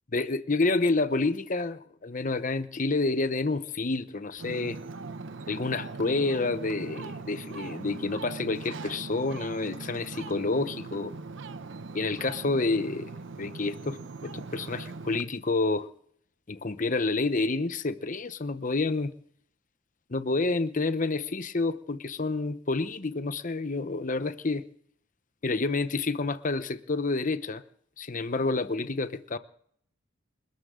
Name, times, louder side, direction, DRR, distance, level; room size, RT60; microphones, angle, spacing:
voice 1, 0.1-4.8 5.5-11.1 11.9-13.1 13.4-14.0 14.2-15.9 16.5-19.1 20.1-24.6 25.4-27.6 28.0-29.4, left 3 dB, 45° left, 0.9 m, -29 dB
Ocean, 4.4-15.2, right 3 dB, 75° right, 0.7 m, -40 dB
28.0 x 13.0 x 3.8 m
head